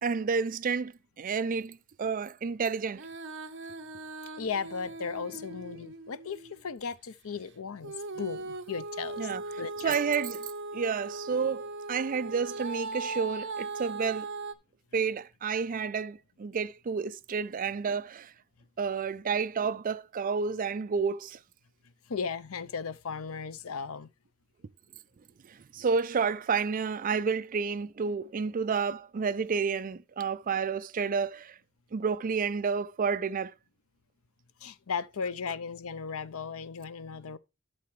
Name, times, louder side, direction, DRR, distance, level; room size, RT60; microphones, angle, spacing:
voice 1, 0.0-3.0 5.3-5.4 9.2-14.3 14.9-18.3 18.8-21.4 25.5-31.6 31.9-33.5, right 5 dB, 40° right, 0.4 m, -30 dB
Female singing, 2.9-6.6 7.8-14.5, right 3 dB, 55° right, 1.0 m, -39 dB
voice 2, 4.4-9.3 9.6-9.9 22.1-24.1 34.6-37.4, left 5 dB, 75° left, 0.6 m, -36 dB
12.0 x 6.7 x 3.1 m
head